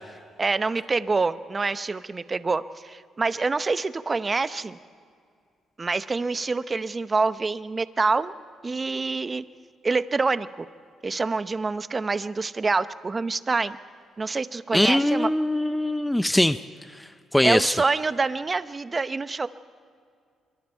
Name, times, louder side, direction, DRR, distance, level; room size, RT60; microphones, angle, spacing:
voice 1, 0.4-4.8 5.8-8.3 8.6-9.4 9.8-10.7 11.0-13.8 14.2-15.3 17.4-19.5, right 3 dB, 30° right, 13 dB, 0.8 m, -26 dB
voice 2, 14.7-16.6 16.9-17.7, left 1 dB, 5° left, 12 dB, 0.5 m, -22 dB
25.5 x 23.0 x 4.6 m, 2.2 s
cardioid pair, 90°, 0 cm